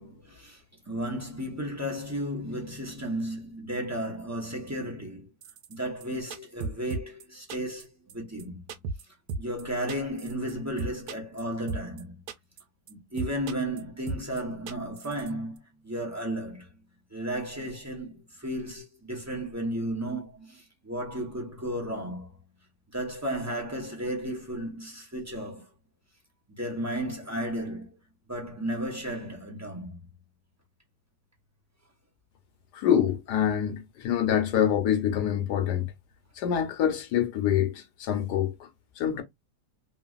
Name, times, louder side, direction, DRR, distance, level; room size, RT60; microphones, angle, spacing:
voice 1, 0.0-5.3 5.7-8.6 9.4-12.2 12.9-16.8 17.1-22.4 22.9-25.7 26.5-28.0 28.3-30.1, right 1 dB, 20° right, 0.5 m, -34 dB
sound 1, 5.4-5.7 6.0-6.1 6.3-7.2 7.5-7.8 8.1-8.2 8.4-8.5 8.7-9.0 9.3-9.6 9.9-10.5 10.8-11.4 11.7-12.0 12.3-12.6 12.9-13.0 13.2-13.8 14.1-14.4 14.7-15.3 15.6-15.7, right 4 dB, 75° right, 1.2 m, -35 dB
voice 2, 32.7-35.9 36.4-38.7 39.0-39.2, left 9 dB, 75° left, 1.3 m, -26 dB
3.1 x 2.4 x 2.3 m
omnidirectional pair, 1.8 m